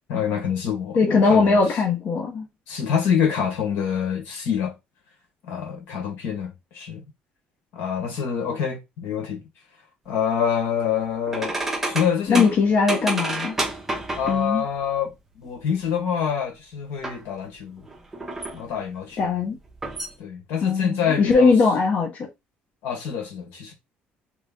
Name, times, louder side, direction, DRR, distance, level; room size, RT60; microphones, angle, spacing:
voice 1, 0.1-1.6 2.7-4.7 5.4-7.0 7.7-9.4 10.0-11.5 11.9-12.5 14.2-17.8 18.5-19.4 20.2-21.5 22.8-23.7, left 7 dB, 80° left, 1.4 m, -26 dB
voice 2, 0.9-2.5 12.3-13.6 14.3-14.6 19.2-19.6 20.6-22.3, left 4 dB, 45° left, 0.8 m, -20 dB
sound 1, 11.3-14.6 17.0-17.2 17.8-18.7 19.7-20.1, right 2 dB, 10° right, 0.7 m, -29 dB
3.2 x 2.5 x 3.6 m
cardioid pair, 155°, 4 cm